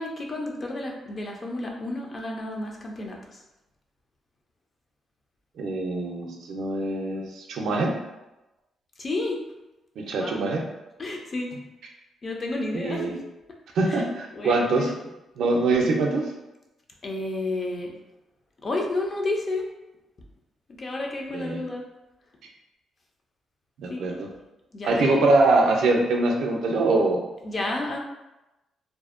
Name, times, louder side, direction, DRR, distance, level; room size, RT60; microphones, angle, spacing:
voice 1, 0.0-3.4 9.0-9.4 10.2-10.4 11.0-11.6 12.2-13.1 13.9-14.1 14.3-14.9 17.0-17.9 18.6-19.7 20.7-21.8 23.9-24.0 24.7-25.3 27.4-28.0, left 2 dB, 35° left, 0 dB, 0.4 m, -31 dB
voice 2, 5.6-7.9 10.0-10.6 12.7-13.2 13.8-14.9 15.4-16.3 21.3-21.7 23.8-24.3 24.8-27.2, right 2 dB, 75° right, 1 dB, 0.4 m, -23 dB
2.6 x 2.0 x 2.4 m, 0.98 s
cardioid pair, 115°, 0 cm